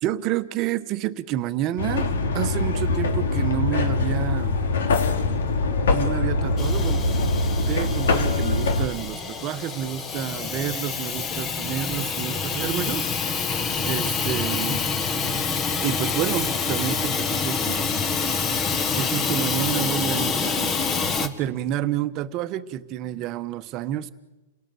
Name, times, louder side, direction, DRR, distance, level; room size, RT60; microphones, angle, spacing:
voice 1, 0.0-2.1 2.3-4.6 5.9-7.1 7.7-13.1 13.8-14.8 15.8-17.9 18.9-20.9 21.2-24.1, right 12 dB, 30° right, 11 dB, 1.1 m, -29 dB
sound 1, 1.8-8.9, left 3 dB, 80° left, 3.1 m, -23 dB
Hiss / Toilet flush / Trickle dribble, 6.6-21.3, left 5 dB, 20° left, 1.5 m, -27 dB
29.5 x 18.0 x 7.7 m, 1.1 s
hypercardioid pair, 150°, 0 cm